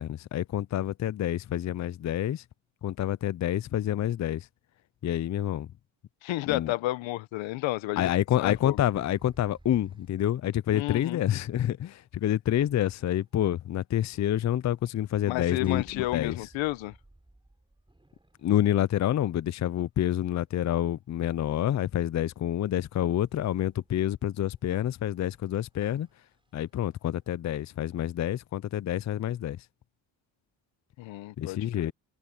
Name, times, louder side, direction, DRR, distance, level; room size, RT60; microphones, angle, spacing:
voice 1, 0.0-2.4 2.8-4.5 5.0-5.7 6.5-6.7 8.0-16.4 18.4-26.1 26.5-29.6 31.4-31.9, left 11 dB, 40° left, 0.5 m, -28 dB
voice 2, 6.2-8.1 8.4-8.8 10.7-11.2 15.3-16.9 31.0-31.6, left 18 dB, 85° left, 1.1 m, -31 dB
sound 1, 8.4-10.2 12.6-13.4 14.0-14.8 15.6-20.7 22.2-27.1, right 1 dB, 10° right, 5.9 m, -59 dB
supercardioid pair, 70°, 45 cm